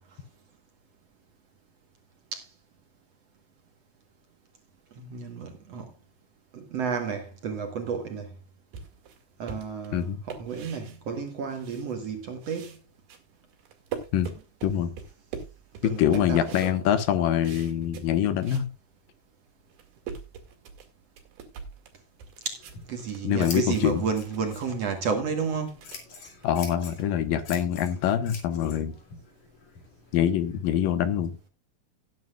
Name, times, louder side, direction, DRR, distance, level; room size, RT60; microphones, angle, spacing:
voice 1, 5.0-5.9 6.5-8.3 9.4-12.8 15.8-16.7 22.5-22.6 22.9-25.8, right 6 dB, 55° right, 2.0 m, -31 dB
sound 1, 8.7-12.1 12.4-18.7 19.1-19.2 19.6-27.7, right 6 dB, 85° right, 4.1 m, -44 dB
voice 2, 14.6-14.9 15.8-18.7 23.2-24.0 26.4-28.9 30.1-31.4, left 10 dB, 75° left, 2.7 m, -25 dB
Scissors, 22.5-30.7, left 5 dB, 55° left, 3.8 m, -46 dB
17.5 x 9.6 x 2.4 m
omnidirectional pair, 4.2 m